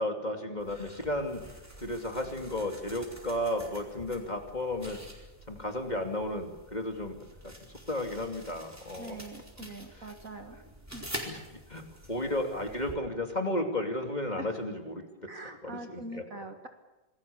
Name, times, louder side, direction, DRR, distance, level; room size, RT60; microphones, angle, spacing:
voice 1, 0.0-1.4 1.8-5.0 5.5-7.2 7.9-9.2 9.6-9.7 10.0-10.1 11.3-11.8 12.1-15.0 15.6-16.2, left 1 dB, 20° left, 4 dB, 2.7 m, -33 dB
sound 1, 0.6-13.0, equal, 10° right, 4.4 m, -47 dB
voice 2, 9.0-10.6 10.9-11.0 14.4-14.5 15.3-16.7, right 2 dB, 45° right, 6 dB, 2.0 m, -43 dB
27.5 x 20.5 x 7.1 m, 1.1 s
omnidirectional pair, 2.1 m